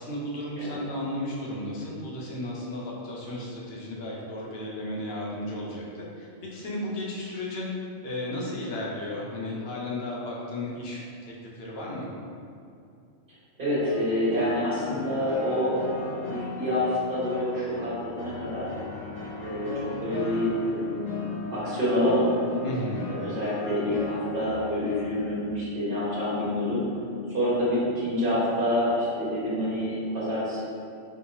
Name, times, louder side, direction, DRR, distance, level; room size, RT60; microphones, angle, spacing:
voice 1, 0.0-7.7 8.0-12.1 22.6-23.0, left 1 dB, 55° left, -4 dB, 1.0 m, -34 dB
voice 2, 13.6-15.8 16.3-18.7 19.4-19.7 20.0-22.3 23.2-26.8 27.3-30.6, left 1 dB, 45° right, -10 dB, 1.8 m, -27 dB
sound 1, 13.8-25.3, left 2 dB, 85° left, 1.4 m, -38 dB
4.2 x 3.5 x 2.9 m, 2.5 s
omnidirectional pair, 1.3 m